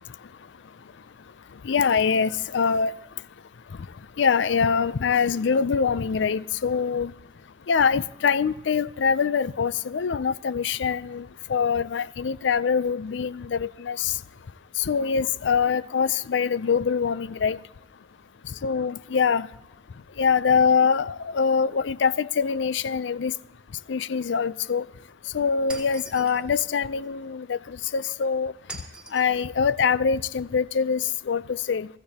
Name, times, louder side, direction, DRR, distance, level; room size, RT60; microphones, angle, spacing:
voice 1, 1.6-2.9 4.2-7.1 7.7-14.1 14.8-17.6 18.6-19.5 20.2-23.3 23.9-24.8 25.3-28.5 29.1-31.9, left 6 dB, 75° left, 0.4 m, -24 dB
Shatter, 25.7-26.5 28.7-29.4, right 2 dB, 5° right, 2.3 m, -41 dB
24.0 x 15.0 x 2.8 m
head